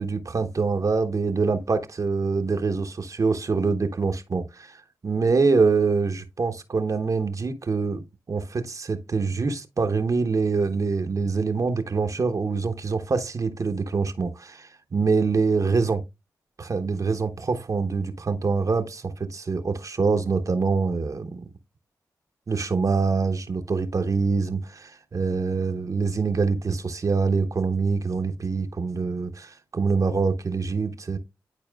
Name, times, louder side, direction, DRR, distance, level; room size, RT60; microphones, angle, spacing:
voice 1, 0.0-16.0 16.6-21.5 22.5-31.2, right 4 dB, 50° right, 0.9 m, -25 dB
11.0 x 4.2 x 2.3 m
cardioid pair, 45°, 7 cm